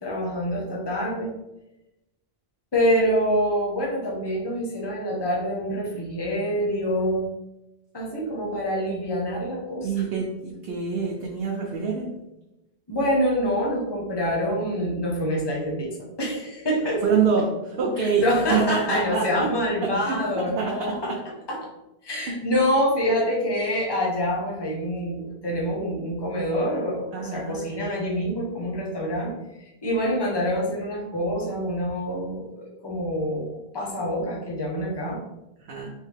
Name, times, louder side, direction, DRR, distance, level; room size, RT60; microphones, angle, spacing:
voice 1, 0.0-1.3 2.7-7.3 7.9-9.9 12.9-17.0 18.0-21.1 21.5-21.6 22.0-33.5 33.7-35.2, equal, 25° left, -3 dB, 0.9 m, -26 dB
voice 2, 9.8-12.1 16.8-19.5 19.8-20.2 20.6-21.2 27.1-27.6 35.6-35.9, right 5 dB, 75° right, -2 dB, 0.9 m, -26 dB
3.6 x 3.3 x 3.2 m, 0.94 s
omnidirectional pair, 1.0 m